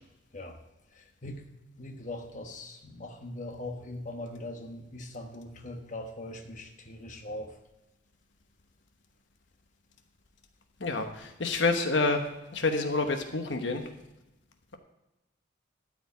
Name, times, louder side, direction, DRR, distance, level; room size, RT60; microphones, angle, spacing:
voice 1, 0.9-1.4 1.8-7.5, left 1 dB, 40° left, 3 dB, 1.2 m, -41 dB
voice 2, 10.8-12.2 12.5-13.8, left 3 dB, 75° left, 5 dB, 1.1 m, -28 dB
13.0 x 5.1 x 8.3 m, 0.97 s
head